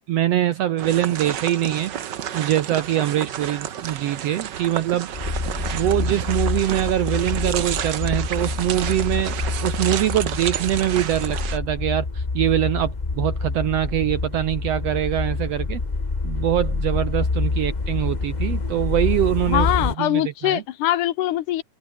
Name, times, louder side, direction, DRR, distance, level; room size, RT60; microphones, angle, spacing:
voice 1, 0.0-1.9 2.3-5.1 5.7-15.8 16.2-20.6, right 12 dB, 70° right, 1.6 m, -23 dB
sound 1, 0.8-11.6, right 9 dB, 85° right, 0.9 m, -31 dB
sound 2, 5.1-19.9, left 3 dB, 55° left, 0.4 m, -27 dB
voice 2, 19.5-21.6, left 13 dB, 75° left, 2.5 m, -22 dB
omnidirectional pair, 3.7 m